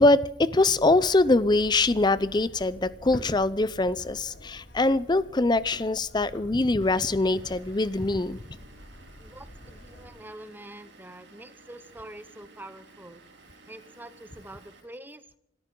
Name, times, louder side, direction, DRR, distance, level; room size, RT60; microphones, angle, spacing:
voice 1, 0.0-8.4, left 2 dB, 25° left, 17 dB, 0.5 m, -23 dB
sound 1, 0.6-10.1, left 1 dB, 80° left, 3.1 m, -47 dB
Vehicle / Engine, 6.8-14.8, right 3 dB, 70° right, 3.3 m, -54 dB
voice 2, 9.2-13.2 13.7-15.4, right 1 dB, 10° right, 13 dB, 0.7 m, -45 dB
25.5 x 13.5 x 3.8 m, 0.74 s
head